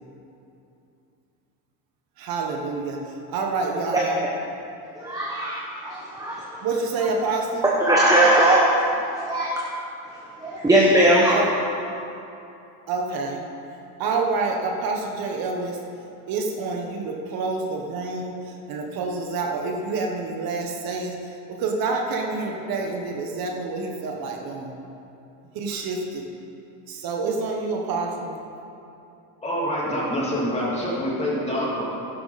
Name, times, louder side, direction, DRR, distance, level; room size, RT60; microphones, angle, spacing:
voice 1, 2.2-4.2 6.6-7.7 11.3-11.5 12.9-13.4 14.0-15.8 16.3-24.7 25.5-26.2 26.9-28.4, right 3 dB, 55° right, 1 dB, 1.4 m, -28 dB
voice 2, 5.0-6.6 7.8-8.6 9.3-9.6 10.4-11.3, right 1 dB, 10° right, -4 dB, 1.1 m, -19 dB
voice 3, 29.4-31.8, equal, 15° left, -6 dB, 2.8 m, -26 dB
11.5 x 11.0 x 4.2 m, 2.8 s
cardioid pair, 135°, 43 cm